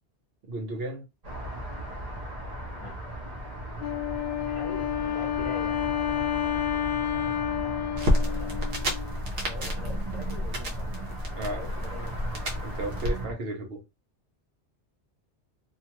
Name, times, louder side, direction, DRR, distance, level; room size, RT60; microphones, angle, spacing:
voice 1, 0.5-1.1 11.3-11.6 12.6-13.8, right 2 dB, 65° right, 1.0 m, -34 dB
sound 1, 1.2-13.3, right 1 dB, 40° right, 0.8 m, -37 dB
Wind instrument woodwind instrument, 3.8-9.2, left 10 dB, 60° left, 0.4 m, -30 dB
voice 2, 4.5-5.8 8.1-8.9 9.3-10.9 11.5-12.1, left 3 dB, 30° left, 1.1 m, -43 dB
sound 2, 8.0-13.1, equal, 80° right, 1.2 m, -30 dB
2.8 x 2.4 x 2.9 m
omnidirectional pair, 1.1 m